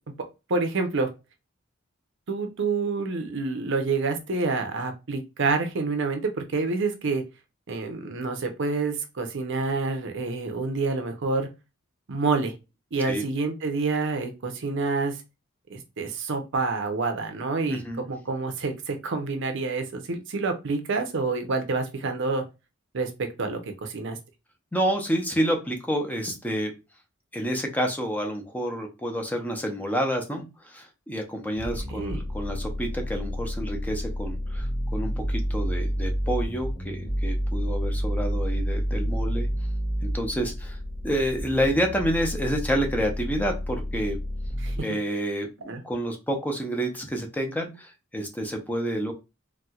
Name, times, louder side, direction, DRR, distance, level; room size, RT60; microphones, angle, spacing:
voice 1, 0.5-1.1 2.3-7.2 7.7-11.5 12.1-12.5 12.9-15.2 15.7-22.4 22.9-24.2 31.9-32.2 44.6-44.8 45.7-45.8, right 3 dB, 65° right, 6 dB, 0.6 m, -28 dB
voice 2, 17.7-18.0 24.7-26.7 27.3-39.5 40.0-40.8 41.0-44.2 44.8-49.1, equal, 10° left, 3 dB, 0.6 m, -29 dB
sound 1, 31.5-44.8, equal, 30° left, 1.8 m, -29 dB
4.2 x 2.2 x 2.3 m, 0.26 s
head